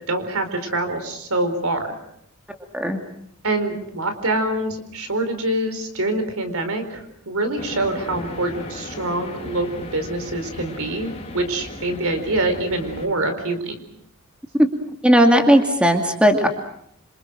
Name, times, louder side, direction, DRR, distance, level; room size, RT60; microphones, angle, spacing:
voice 1, 0.1-1.9 3.4-13.7, right 2 dB, 70° right, 8 dB, 4.5 m, -25 dB
sound 1, 7.6-13.1, left 1 dB, 30° left, 3.6 m, -36 dB
voice 2, 15.0-16.5, equal, 5° right, 4 dB, 2.5 m, -16 dB
27.5 x 27.0 x 6.4 m, 0.71 s
head